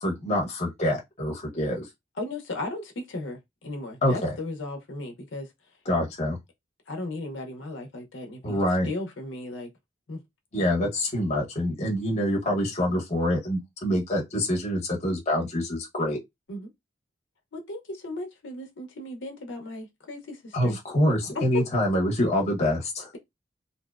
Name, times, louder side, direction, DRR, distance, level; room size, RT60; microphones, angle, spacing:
voice 1, 0.0-1.9 4.0-4.3 5.9-6.4 8.4-8.9 10.5-16.2 20.5-23.1, left 1 dB, 35° left, 0.8 m, -26 dB
voice 2, 2.2-5.5 6.9-9.7 10.1-10.2 16.5-16.7 17.5-20.8 21.3-21.6, left 2 dB, 80° left, 0.6 m, -36 dB
2.7 x 2.0 x 2.3 m
head